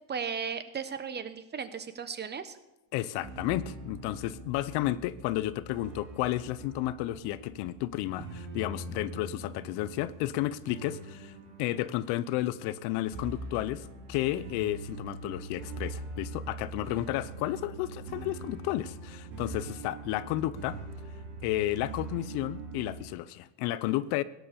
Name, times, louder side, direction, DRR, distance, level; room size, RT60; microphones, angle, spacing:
voice 1, 0.1-2.6, right 6 dB, 25° right, 1.0 m, -36 dB
voice 2, 2.9-11.3 11.6-20.8 21.4-24.2, left 15 dB, 80° left, 0.8 m, -32 dB
sound 1, 3.2-23.0, right 2 dB, 80° right, 5.1 m, -43 dB
17.0 x 9.3 x 6.9 m
cardioid pair, 135°, 40 cm